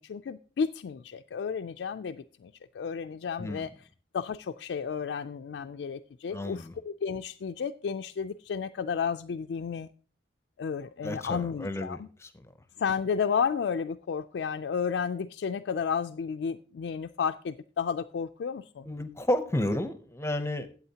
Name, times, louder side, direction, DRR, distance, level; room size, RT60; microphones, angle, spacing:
voice 1, 0.0-3.9 4.1-9.9 10.6-12.1 12.8-18.9, left 6 dB, 75° left, 7 dB, 0.3 m, -32 dB
voice 2, 6.3-6.7 11.0-12.3 18.9-20.7, left 1 dB, 15° left, 10 dB, 0.6 m, -31 dB
13.5 x 8.2 x 2.8 m, 0.39 s
head